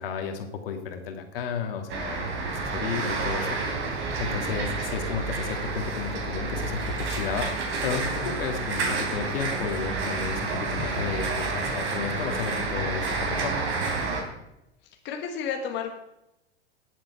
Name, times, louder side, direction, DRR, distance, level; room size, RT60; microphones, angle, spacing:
voice 1, 0.0-3.6 4.2-7.5 7.8-13.5, left 6 dB, 60° left, 5 dB, 2.2 m, -32 dB
sound 1, 1.9-14.2, right 4 dB, 40° right, 3.5 m, -29 dB
voice 2, 15.0-15.9, left 7 dB, 35° left, 3 dB, 1.6 m, -31 dB
19.0 x 7.6 x 4.7 m, 0.88 s
figure-of-eight pair, 90°, 32 cm